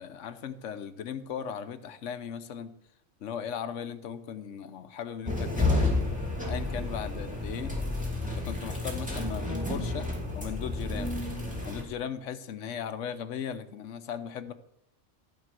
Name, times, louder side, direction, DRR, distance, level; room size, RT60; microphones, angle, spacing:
voice 1, 0.0-2.7 3.2-5.9 6.5-7.7 8.4-10.1 10.3-11.2 11.6-14.5, left 8 dB, 85° left, 11 dB, 1.1 m, -37 dB
sound 1, 5.3-11.8, left 2 dB, 5° right, 2.5 m, -30 dB
14.0 x 5.1 x 7.5 m, 0.76 s
omnidirectional pair, 1.2 m